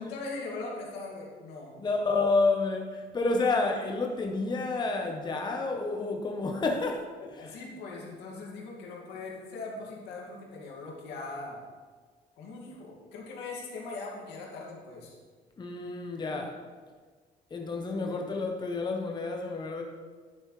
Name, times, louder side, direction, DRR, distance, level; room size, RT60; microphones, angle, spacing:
voice 1, 0.0-1.7 7.2-11.7 12.4-15.2 18.1-18.2, left 3 dB, 85° left, -2 dB, 2.2 m, -40 dB
voice 2, 1.8-7.6 15.6-16.6 17.5-19.8, left 3 dB, 25° left, 2 dB, 0.9 m, -29 dB
10.5 x 8.0 x 3.2 m, 1.5 s
cardioid pair, 110°, 17 cm